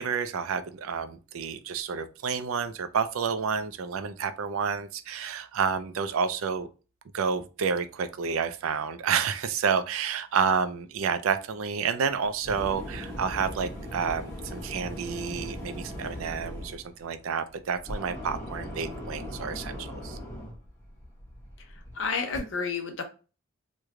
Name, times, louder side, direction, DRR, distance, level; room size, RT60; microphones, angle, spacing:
voice 1, 0.0-6.7 7.1-20.2, right 6 dB, 75° right, 0.4 m, -29 dB
sound 1, 12.1-22.4, equal, 10° left, 0.9 m, -39 dB
voice 2, 22.0-23.0, left 4 dB, 60° left, 0.6 m, -30 dB
3.1 x 2.2 x 3.6 m
head